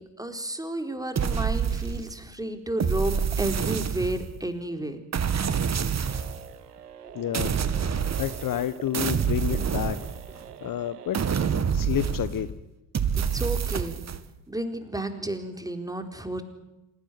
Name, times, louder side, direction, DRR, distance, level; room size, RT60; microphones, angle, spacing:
voice 1, 0.0-5.0 13.2-14.1 14.5-16.4, right 1 dB, 10° right, 7 dB, 4.3 m, -32 dB
sound 1, 1.2-2.3 2.8-4.4 5.1-6.5 7.3-8.7 8.9-10.5 11.1-12.5 12.9-14.2, right 7 dB, 35° right, 2.0 m, -27 dB
sound 2, 6.1-11.6, right 8 dB, 85° right, 1.1 m, -44 dB
voice 2, 7.1-7.5 8.2-10.0 10.6-11.2 11.7-12.5, left 11 dB, 45° left, 14 dB, 1.3 m, -29 dB
27.0 x 17.0 x 9.5 m, 0.97 s
figure-of-eight pair, 50°, 46 cm